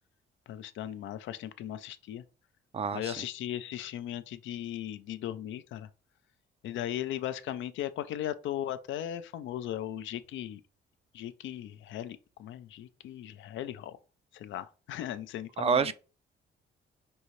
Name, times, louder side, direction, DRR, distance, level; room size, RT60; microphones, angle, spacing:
voice 1, 0.5-2.2 2.9-5.9 6.6-10.6 11.1-14.0 14.3-15.9, left 11 dB, 75° left, 0.5 m, -37 dB
voice 2, 2.7-3.1 15.6-15.9, right 6 dB, 30° right, 0.4 m, -27 dB
5.3 x 2.7 x 3.0 m
cardioid pair, 90°, 20 cm